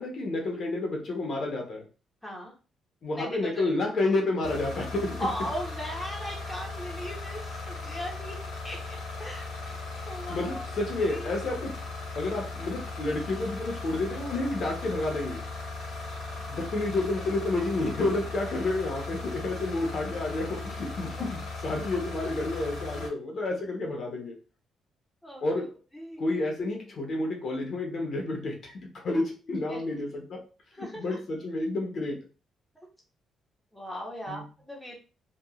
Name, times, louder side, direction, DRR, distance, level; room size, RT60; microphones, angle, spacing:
voice 1, 0.0-1.9 3.0-5.3 10.3-11.8 12.2-15.5 16.5-24.4 25.4-25.8 26.2-30.4 30.8-32.2 34.3-34.4, left 2 dB, 55° left, 1 dB, 0.9 m, -30 dB
voice 2, 2.2-2.5 3.2-3.7 5.2-8.4 8.6-9.6 10.1-10.6 11.1-11.3 21.1-21.3 25.2-25.7 25.9-26.4 29.7-29.8 30.8-31.2 32.7-32.9 33.7-35.0, equal, ahead, -3 dB, 0.9 m, -38 dB
sound 1, 4.4-23.1, left 3 dB, 75° left, 1.1 m, -38 dB
2.9 x 2.4 x 2.4 m, 0.34 s
cardioid pair, 90°, 0 cm